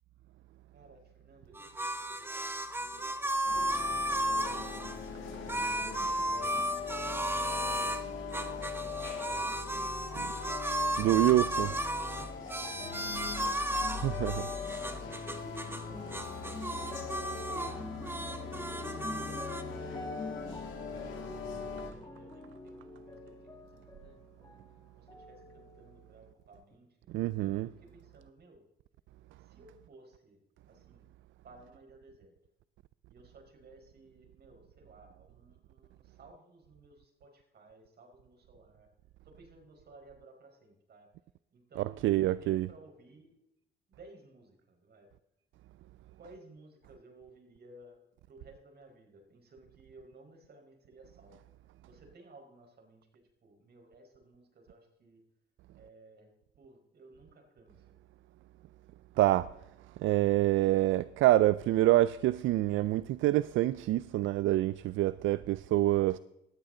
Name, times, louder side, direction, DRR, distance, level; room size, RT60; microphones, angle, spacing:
voice 1, 0.7-5.6 6.1-9.7 12.1-13.7 18.2-20.8 21.6-24.6 24.9-26.9 27.6-28.6 29.4-30.4 30.7-31.1 31.4-32.3 33.1-38.9 39.2-41.1 41.5-43.4 43.9-45.1 46.2-48.0 48.3-51.4 51.8-55.2 55.7-56.3 56.6-57.8, right 2 dB, 55° right, 4.8 m, -58 dB
sound 1, 1.5-5.0 5.5-8.0 8.3-17.7 18.0-19.6, right 1 dB, 10° right, 1.2 m, -34 dB
sound 2, 3.4-21.9, left 5 dB, 75° left, 5.6 m, -41 dB
voice 2, 11.0-11.7 14.0-14.4 27.1-27.7 41.8-42.7 59.2-59.5 60.0-66.2, right 15 dB, 80° right, 0.4 m, -26 dB
sound 3, 11.3-24.8 25.1-26.0 26.7-26.8, left 2 dB, 15° left, 2.2 m, -46 dB
18.5 x 13.0 x 3.9 m
cardioid pair, 90°, 20 cm